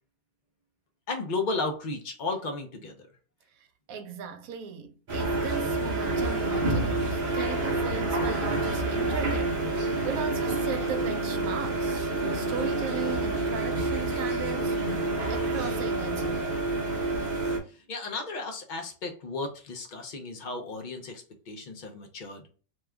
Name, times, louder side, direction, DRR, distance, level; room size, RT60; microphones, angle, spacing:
voice 1, 1.1-3.1 17.7-22.4, left 3 dB, 75° left, 0.4 m, -34 dB
voice 2, 3.6-16.7, right 6 dB, 75° right, 1.0 m, -37 dB
sound 1, 5.1-17.6, right 2 dB, 40° right, 0.7 m, -28 dB
3.0 x 2.3 x 3.3 m
omnidirectional pair, 1.5 m